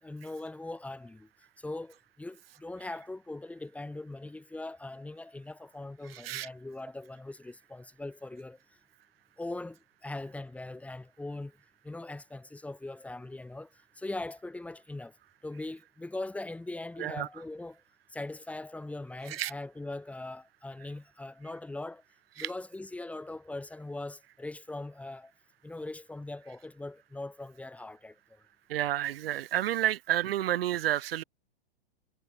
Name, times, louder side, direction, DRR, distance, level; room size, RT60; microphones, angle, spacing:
voice 1, 0.0-1.3 1.6-8.8 9.4-11.6 11.8-15.2 15.4-17.8 18.1-22.0 22.4-25.3 25.6-28.4, left 2 dB, 5° left, 3.6 m, -41 dB
voice 2, 28.7-31.2, right 13 dB, 65° right, 2.3 m, -30 dB
hypercardioid pair, 145°, 31 cm